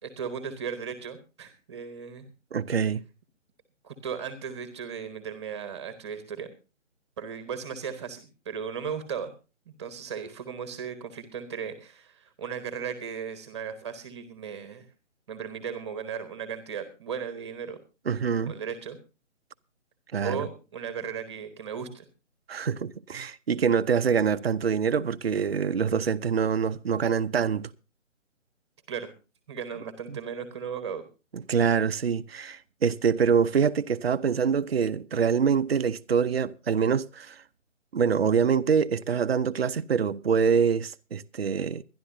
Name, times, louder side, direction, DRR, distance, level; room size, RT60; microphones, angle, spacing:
voice 1, 0.0-2.2 3.8-6.5 7.2-9.3 9.8-14.9 15.3-17.8 18.4-19.0 20.2-22.1 28.9-29.1 29.5-31.0, right 7 dB, 20° right, 1.2 m, -36 dB
voice 2, 2.5-3.0 18.1-18.5 20.1-20.5 22.5-27.7 30.1-30.2 31.3-37.4 37.9-41.8, right 6 dB, 50° right, 0.7 m, -25 dB
23.5 x 11.0 x 2.7 m
figure-of-eight pair, 145°, 39 cm